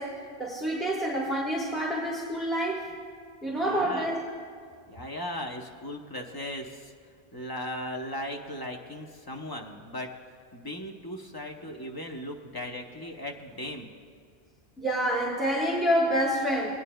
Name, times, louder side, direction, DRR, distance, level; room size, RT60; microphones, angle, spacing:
voice 1, 0.0-2.9 3.4-4.2 14.8-16.8, equal, ahead, -4 dB, 1.2 m, -28 dB
voice 2, 3.5-4.1 4.9-6.9 7.3-10.1 10.5-13.9, left 1 dB, 25° left, 2 dB, 0.7 m, -37 dB
21.5 x 9.3 x 2.2 m, 2.1 s
omnidirectional pair, 1.1 m